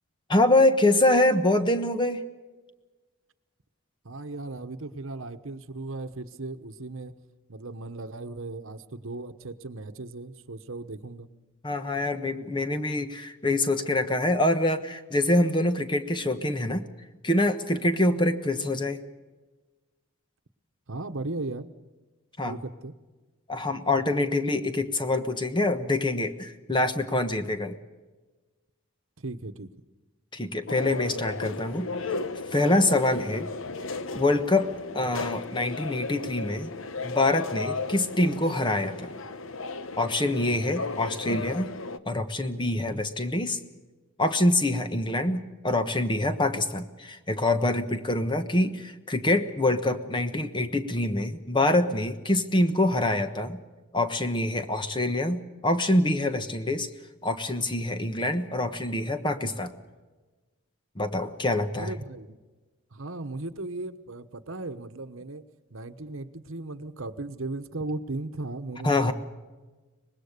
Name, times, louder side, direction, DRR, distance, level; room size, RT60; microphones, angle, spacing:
voice 1, 0.3-2.2 11.6-16.8 17.2-19.0 22.4-22.6 23.5-27.8 30.3-31.9 32.5-33.5 34.1-34.7 34.9-36.7 37.0-39.1 40.0-41.7 42.0-43.6 44.2-53.6 53.9-56.9 57.2-59.7 61.0-61.9 68.8-69.1, left 1 dB, 20° left, 8 dB, 1.2 m, -25 dB
voice 2, 4.0-7.1 7.5-11.3 20.9-21.7 22.5-22.9 29.2-29.7 61.7-62.4 62.9-65.4 65.7-68.9, right 2 dB, 65° right, 10 dB, 1.1 m, -36 dB
sound 1, 30.7-42.0, left 3 dB, 65° left, 1.0 m, -35 dB
24.5 x 20.5 x 6.7 m, 1.2 s
head